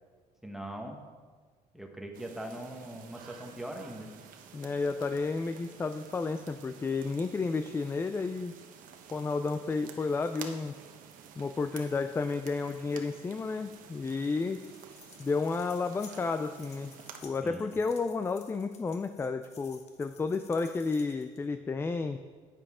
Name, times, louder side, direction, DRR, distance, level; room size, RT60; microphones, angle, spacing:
voice 1, 0.4-1.0 1.7-4.1 17.4-17.8, right 1 dB, 5° right, 2 dB, 1.3 m, -41 dB
sound 1, 2.1-17.2, right 7 dB, 70° right, 1.1 m, -51 dB
voice 2, 4.5-8.5 9.1-10.7 11.4-14.6 15.2-16.9 17.2-22.2, left 4 dB, 15° left, 9 dB, 0.4 m, -32 dB
sound 2, 14.5-21.5, left 5 dB, 50° left, 1.4 m, -56 dB
10.5 x 9.1 x 3.7 m, 1.5 s
cardioid pair, 120°, 14 cm